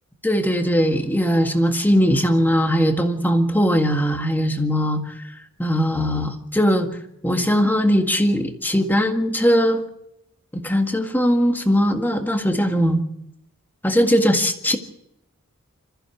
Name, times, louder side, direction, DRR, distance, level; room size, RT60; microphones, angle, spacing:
voice 1, 0.2-5.0 5.6-6.9 7.2-9.8 10.5-13.0 13.8-14.8, equal, 10° left, 4 dB, 1.8 m, -19 dB
26.5 x 15.0 x 7.0 m, 0.78 s
head